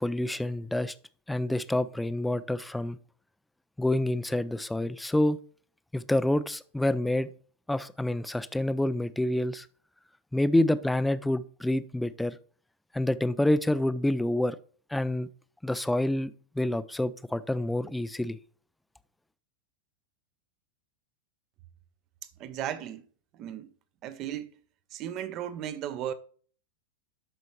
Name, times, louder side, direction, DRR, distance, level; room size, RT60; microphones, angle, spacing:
voice 1, 0.0-0.9 1.3-3.0 3.8-5.4 5.9-7.3 7.7-9.6 10.3-12.4 12.9-14.6 14.9-15.3 15.6-16.3 16.6-18.4, left 1 dB, 5° left, 0.5 m, -27 dB
voice 2, 22.4-23.0 23.4-23.7 24.0-24.5 24.9-26.1, right 10 dB, 35° right, 0.8 m, -35 dB
12.5 x 5.1 x 3.1 m
figure-of-eight pair, 90°, 0 cm